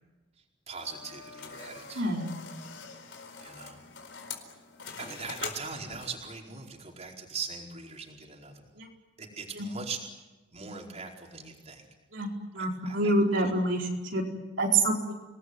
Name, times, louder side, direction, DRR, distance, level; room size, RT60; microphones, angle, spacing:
voice 1, 0.7-2.2 3.4-3.8 5.0-8.7 9.2-10.0 10.5-11.8 12.6-13.1, right 5 dB, 35° right, 0 dB, 4.7 m, -40 dB
sound 1, 0.8-6.3, left 6 dB, 75° left, 4.4 m, -44 dB
voice 2, 1.9-2.3 8.7-8.9 9.5-9.7 12.1-12.3 12.5-14.2 14.6-15.2, right 2 dB, 75° right, -1 dB, 4.7 m, -27 dB
30.0 x 20.0 x 9.7 m, 1.1 s
head